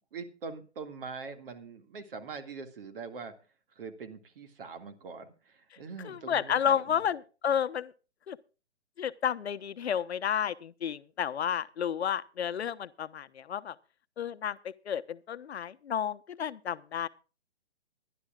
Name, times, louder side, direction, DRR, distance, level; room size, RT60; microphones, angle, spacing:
voice 1, 0.1-3.3 3.7-7.0, right 4 dB, 50° right, 2.1 m, -43 dB
voice 2, 6.0-7.9 8.3-8.4 9.0-13.7 14.2-14.6 14.8-17.1, left 8 dB, 65° left, 1.0 m, -31 dB
23.0 x 11.5 x 2.4 m
hypercardioid pair, 140°, 35 cm